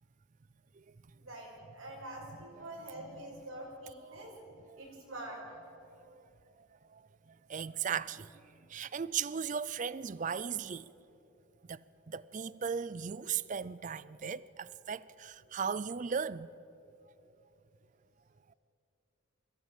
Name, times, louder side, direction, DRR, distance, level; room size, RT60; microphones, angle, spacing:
voice 1, 1.2-4.3 4.8-5.6, right 1 dB, 85° right, 6.1 m, -45 dB
voice 2, 7.5-10.9 11.7-16.5, right 7 dB, 35° right, 0.4 m, -37 dB
22.5 x 16.0 x 8.8 m
head